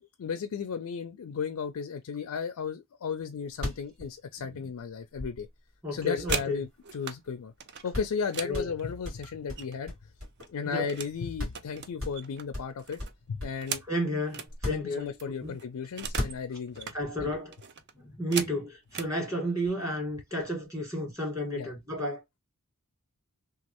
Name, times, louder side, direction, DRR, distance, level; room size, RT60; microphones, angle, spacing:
voice 1, 0.2-5.5 5.9-7.5 7.8-9.9 10.5-13.0 13.3-13.8 14.7-16.9 17.2-17.3 21.5-21.7, left 6 dB, 70° left, 0.4 m, -35 dB
sound 1, 3.5-5.7 6.3-7.3 7.6-7.7 7.9-8.2 8.5-10.7 11.0-11.1 11.4-11.7 12.0-13.7 14.5-15.4 16.0-16.8, left 1 dB, 65° right, 1.7 m, -37 dB
voice 2, 5.8-6.6 8.4-8.7 10.7-11.0 13.9-15.1 15.4-15.6 16.9-17.5 18.0-22.2, equal, 15° right, 1.7 m, -32 dB
sound 2, 5.9-7.2 7.6-9.9 10.2-11.2 11.5-14.5 14.9-15.0 15.2-16.4 16.7-17.0 17.5-19.2 20.0-20.1 20.5-20.8 21.1-21.6, right 7 dB, 50° right, 0.5 m, -39 dB
3.0 x 2.4 x 2.9 m
head